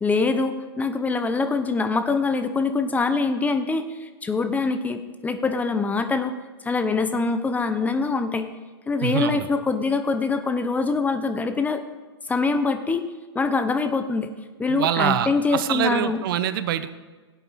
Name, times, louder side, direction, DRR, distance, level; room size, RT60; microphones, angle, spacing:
voice 1, 0.0-6.3 6.6-8.5 8.9-11.8 12.3-13.1 13.3-14.3 14.6-16.2, left 4 dB, 10° left, 9 dB, 0.6 m, -24 dB
voice 2, 9.0-9.5 14.7-16.9, right 10 dB, 55° right, 13 dB, 0.7 m, -25 dB
16.0 x 8.2 x 4.1 m, 1.3 s
hypercardioid pair, 110°, 14 cm